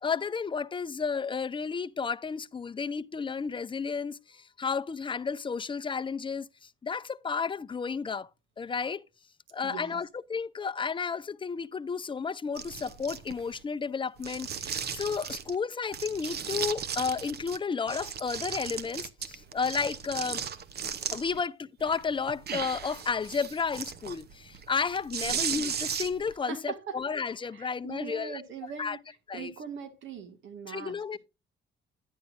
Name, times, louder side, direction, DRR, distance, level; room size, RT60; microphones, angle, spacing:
voice 1, 0.0-8.3 8.6-9.0 9.5-20.4 21.1-28.4 28.8-29.0 29.3-29.5 30.7-31.2, left 5 dB, 25° left, 0.6 m, -32 dB
voice 2, 9.6-10.0 25.2-25.4 26.5-27.0 27.5-29.0 29.3-31.2, right 6 dB, 75° right, 1.9 m, -41 dB
sound 1, 12.6-13.6 14.2-15.6 15.9-17.6 17.9-21.4 21.8-26.3, right 7 dB, 55° right, 0.9 m, -36 dB
10.0 x 9.9 x 2.6 m
cardioid pair, 90°, 20 cm